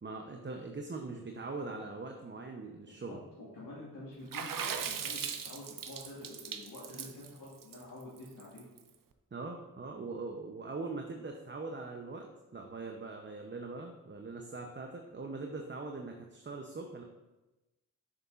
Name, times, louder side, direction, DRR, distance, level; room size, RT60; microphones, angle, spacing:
voice 1, 0.0-3.2 9.3-12.3 12.5-17.0, right 3 dB, 30° right, 2 dB, 0.7 m, -41 dB
voice 2, 2.9-8.7, left 1 dB, 65° left, -7 dB, 1.6 m, -48 dB
Water / Splash splatter, 4.3-8.8, right 7 dB, 60° right, 0.7 m, -39 dB
6.8 x 6.5 x 2.5 m, 1.1 s
cardioid pair, 45°, 37 cm